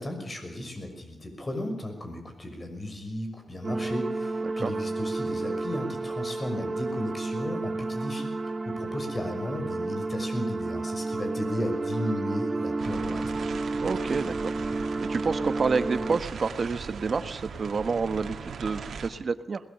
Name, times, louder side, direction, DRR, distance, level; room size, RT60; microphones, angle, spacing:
voice 1, 0.0-13.4, left 1 dB, 30° left, 5 dB, 6.0 m, -35 dB
sound 1, 3.6-16.2, right 3 dB, 40° right, 1.0 m, -31 dB
sound 2, 12.8-19.1, right 5 dB, 75° right, 2.3 m, -39 dB
voice 2, 13.8-14.5 15.1-19.6, right 4 dB, 55° right, 11 dB, 1.3 m, -29 dB
22.0 x 20.0 x 6.9 m, 0.86 s
cardioid pair, 75°, 0 cm